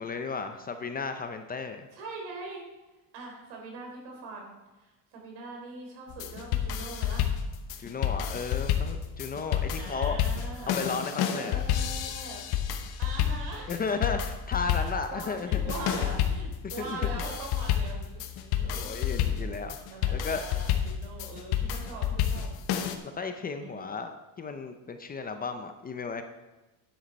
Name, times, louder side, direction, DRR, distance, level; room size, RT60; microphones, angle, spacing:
voice 1, 0.0-1.9 7.8-10.2 10.7-11.6 13.7-15.6 16.8-17.2 18.6-19.8 20.1-20.4 23.1-26.2, left 4 dB, 20° left, 7 dB, 0.5 m, -34 dB
voice 2, 1.9-2.6 3.1-7.3 9.7-10.7 11.3-12.4 13.0-13.8 14.8-22.5 23.4-24.0, right 3 dB, 80° right, 0 dB, 3.6 m, -42 dB
sound 1, 6.1-23.0, left 9 dB, 60° left, 1.1 m, -30 dB
10.0 x 7.7 x 4.2 m, 1.1 s
cardioid pair, 135°, 44 cm